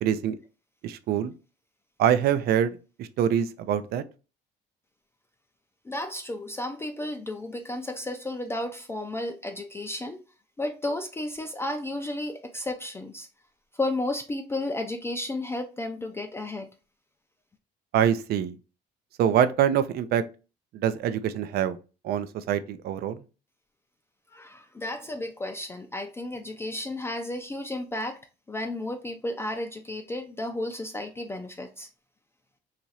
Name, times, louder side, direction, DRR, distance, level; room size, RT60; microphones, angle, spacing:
voice 1, 0.0-0.4 0.8-1.3 2.0-2.7 3.0-4.0 17.9-18.5 19.2-20.2 20.8-21.8 22.0-23.1, right 9 dB, 65° right, 0.5 m, -24 dB
voice 2, 5.8-10.2 10.6-13.3 13.7-16.7 24.3-28.2 28.5-31.9, left 1 dB, 15° left, 0.4 m, -33 dB
3.0 x 2.5 x 4.1 m
cardioid pair, 110°, 17 cm